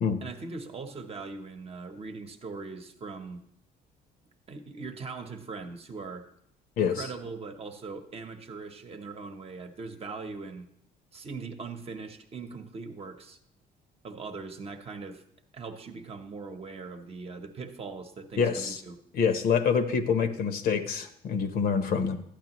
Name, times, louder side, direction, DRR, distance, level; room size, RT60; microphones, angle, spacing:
voice 1, 0.2-3.4 4.5-6.3 6.8-10.7 11.1-13.4 14.0-15.2 15.5-19.0, right 4 dB, 35° right, 6 dB, 0.9 m, -40 dB
voice 2, 6.8-7.1 18.4-18.8 19.1-22.2, left 6 dB, 65° left, 9 dB, 0.9 m, -26 dB
12.0 x 8.8 x 3.0 m, 0.71 s
cardioid pair, 110°, 17 cm